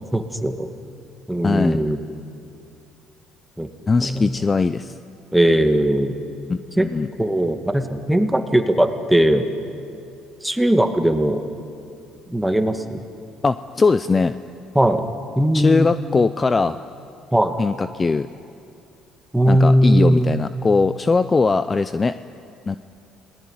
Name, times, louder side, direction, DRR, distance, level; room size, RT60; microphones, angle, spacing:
voice 1, 0.1-0.7 1.3-2.0 3.6-3.7 4.0-4.3 5.3-6.2 6.8-6.9 7.2-9.5 10.4-11.4 12.3-13.0 14.8-15.1 15.4-15.9 17.3-17.6 19.3-20.3, right 1 dB, 5° right, 6 dB, 2.0 m, -19 dB
voice 2, 1.4-1.8 3.9-4.9 6.5-7.1 13.4-14.4 15.5-16.8 17.6-18.3 19.5-22.1 22.7-22.8, left 4 dB, 25° left, 12 dB, 0.6 m, -20 dB
29.0 x 19.5 x 9.7 m, 2.6 s
cardioid pair, 110°, 0 cm